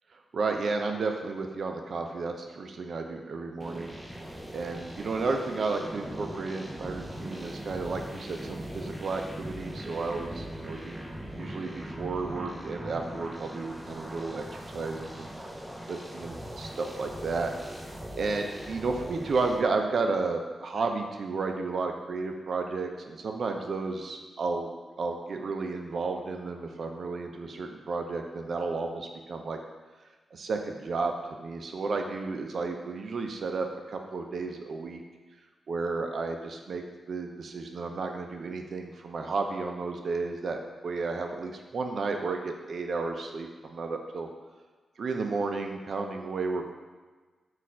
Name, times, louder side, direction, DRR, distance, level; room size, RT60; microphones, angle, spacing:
voice 1, 0.1-3.9 4.5-15.3 15.9-17.5 18.2-29.6 30.3-35.0 35.7-40.6 40.8-44.3 45.0-46.7, right 3 dB, 65° right, 4 dB, 0.5 m, -32 dB
sound 1, 3.6-19.6, equal, 10° right, 0.5 m, -40 dB
4.1 x 2.4 x 4.3 m, 1.3 s
cardioid pair, 65°, 0 cm